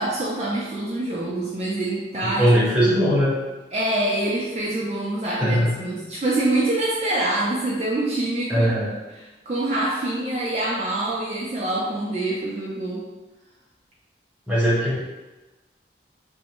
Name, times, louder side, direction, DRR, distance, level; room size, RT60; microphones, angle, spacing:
voice 1, 0.0-2.5 2.8-2.9 3.7-8.8 9.1-13.1, right 2 dB, 35° right, -6 dB, 0.4 m, -25 dB
voice 2, 2.2-3.3 5.4-5.7 8.5-8.9 14.5-15.0, equal, 5° right, -8 dB, 0.8 m, -20 dB
2.6 x 2.0 x 2.8 m, 1.1 s
head